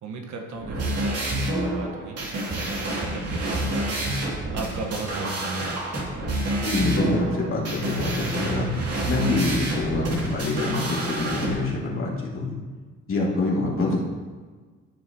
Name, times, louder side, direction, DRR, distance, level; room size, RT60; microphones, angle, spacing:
voice 1, 0.0-4.1 4.5-5.8, right 3 dB, 70° right, 3 dB, 1.4 m, -36 dB
sound 1, 0.6-11.5, right 1 dB, 55° right, 2.7 m, -28 dB
voice 2, 6.6-8.7 9.0-12.6 13.1-14.0, left 2 dB, 45° left, -3 dB, 2.6 m, -25 dB
14.0 x 6.4 x 3.0 m, 1.4 s
cardioid pair, 90°, 30 cm